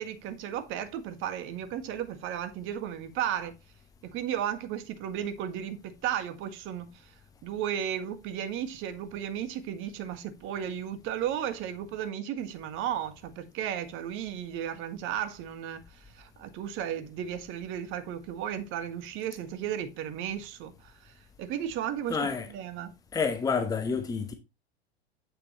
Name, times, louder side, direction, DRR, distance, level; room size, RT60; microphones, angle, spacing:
voice 1, 0.0-3.5 4.0-7.1 7.4-22.3 22.5-22.9, right 10 dB, 40° right, 1.7 m, -34 dB
voice 2, 22.1-22.5 23.1-24.3, left 5 dB, 10° left, 1.0 m, -29 dB
9.1 x 7.5 x 3.0 m
figure-of-eight pair, 90°, 32 cm